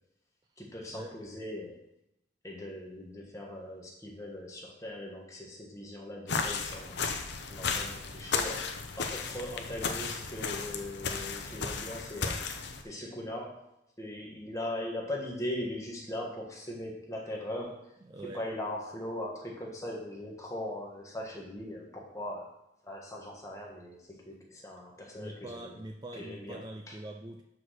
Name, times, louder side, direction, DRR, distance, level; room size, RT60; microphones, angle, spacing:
voice 1, 0.6-1.8 2.4-7.0 7.5-12.4 12.8-13.7 14.0-17.9 18.3-22.5 22.8-25.8 26.1-26.9, left 1 dB, 15° left, -1 dB, 1.4 m, -40 dB
sound 1, 6.3-12.8, left 5 dB, 65° left, 0.7 m, -34 dB
voice 2, 18.0-18.4 25.2-27.4, right 1 dB, 20° right, 3 dB, 0.4 m, -43 dB
5.9 x 4.8 x 6.4 m, 0.85 s
head